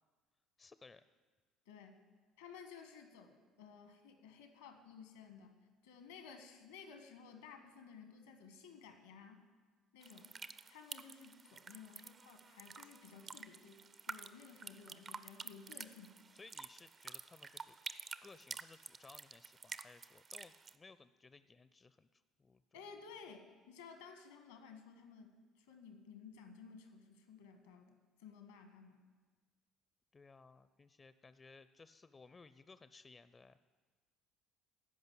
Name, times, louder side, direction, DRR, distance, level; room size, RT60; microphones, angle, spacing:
voice 1, 0.6-1.0 13.1-13.2 16.3-17.8 18.2-22.8 30.1-33.6, left 4 dB, 25° left, 14 dB, 0.5 m, -60 dB
voice 2, 1.7-2.0 2.4-5.5 5.8-9.4 9.9-10.3 10.7-16.2 22.7-29.0, left 6 dB, 80° left, 7 dB, 1.3 m, -55 dB
sound 1, 10.0-20.8, right 5 dB, 40° right, 0.5 m, -50 dB
13.5 x 5.3 x 8.7 m, 1.4 s
hypercardioid pair, 55°, 0 cm